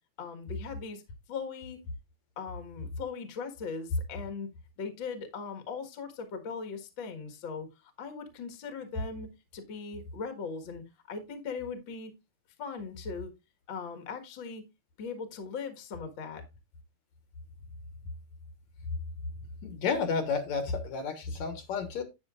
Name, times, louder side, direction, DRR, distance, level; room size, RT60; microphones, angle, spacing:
voice 1, 0.2-1.0 1.3-1.8 2.4-4.5 4.8-10.8 11.1-12.1 12.6-13.3 13.7-14.6 15.0-16.4, left 5 dB, 45° left, 2.0 m, -39 dB
voice 2, 19.6-22.0, left 5 dB, 70° left, 2.5 m, -31 dB
10.5 x 9.1 x 2.5 m
omnidirectional pair, 3.5 m